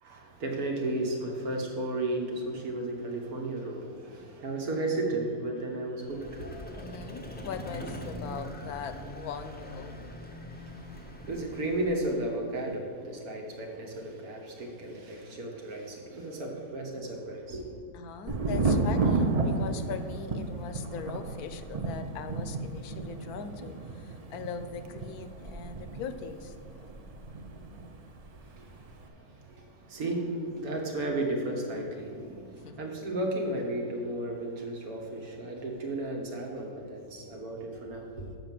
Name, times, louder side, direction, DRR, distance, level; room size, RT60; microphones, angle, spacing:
voice 1, 0.0-6.7 10.6-17.8 28.4-38.4, right 1 dB, 75° right, 0 dB, 1.8 m, -34 dB
Vehicle, 6.0-12.5, equal, 10° left, 0.4 m, -42 dB
voice 2, 6.8-10.2 17.9-26.5 32.6-32.7, left 6 dB, 80° left, 9 dB, 1.1 m, -40 dB
Thunder, 18.3-27.9 28.2-28.9, right 3 dB, 45° right, 0.5 m, -32 dB
7.0 x 5.5 x 7.4 m, 2.3 s
omnidirectional pair, 1.6 m